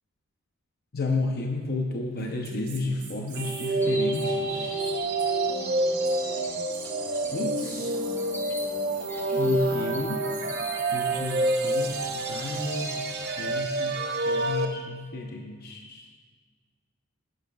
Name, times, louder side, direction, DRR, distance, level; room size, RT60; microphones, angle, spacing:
voice 1, 0.9-4.9 7.3-7.9 9.4-10.2 10.9-13.0 13.4-14.0 14.3-16.1, left 2 dB, 45° left, 1 dB, 0.7 m, -32 dB
Female speech woman speaking, 2.2-9.0 9.3-10.6, right 3 dB, 85° right, 1.8 m, -44 dB
sound 1, 3.4-14.7, right 2 dB, 50° right, 0.7 m, -28 dB
sound 2, 3.8-13.6, left 1 dB, 10° left, 0.6 m, -45 dB
11.0 x 10.5 x 2.3 m, 1.5 s
head